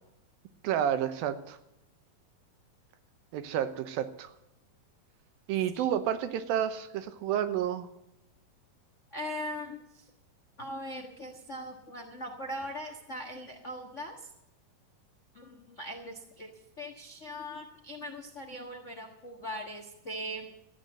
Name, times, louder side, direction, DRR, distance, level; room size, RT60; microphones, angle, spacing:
voice 1, 0.6-1.6 3.3-4.3 5.5-7.9, right 10 dB, 85° right, 10 dB, 2.8 m, -30 dB
voice 2, 9.1-10.1 10.6-14.3 15.3-16.5 16.8-20.5, equal, 85° left, 3 dB, 0.6 m, -40 dB
14.5 x 9.4 x 7.8 m, 0.83 s
omnidirectional pair, 4.1 m